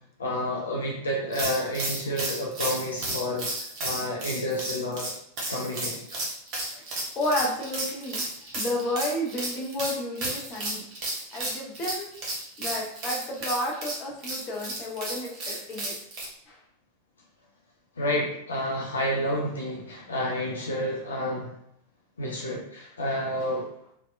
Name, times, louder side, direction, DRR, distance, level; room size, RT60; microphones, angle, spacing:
voice 1, 0.2-3.5 3.8-5.1 5.5-6.0 18.0-21.5 22.2-23.7, equal, 70° left, -1 dB, 0.4 m, -29 dB
sound 1, 1.3-16.3, right 2 dB, 35° right, 0.9 m, -33 dB
voice 2, 7.2-8.2 8.5-10.8 11.3-12.1 12.6-15.9 16.5-16.6, left 1 dB, 35° left, -1 dB, 0.6 m, -31 dB
2.7 x 2.1 x 2.3 m, 0.72 s
figure-of-eight pair, 90°, 0 cm